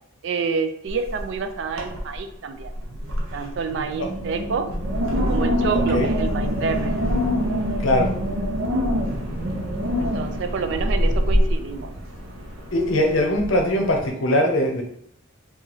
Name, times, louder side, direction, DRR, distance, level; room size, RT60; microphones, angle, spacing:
voice 1, 0.2-2.7 3.3-4.7 5.3-6.9 10.0-11.9, right 5 dB, 55° right, 7 dB, 0.3 m, -28 dB
Wind, 0.9-1.4 1.7-2.2 2.6-14.1, equal, 85° right, 0.7 m, -25 dB
voice 2, 5.7-6.1 7.8-8.1 12.7-14.8, left 1 dB, 65° left, 2 dB, 0.7 m, -21 dB
3.0 x 2.4 x 3.9 m, 0.67 s
head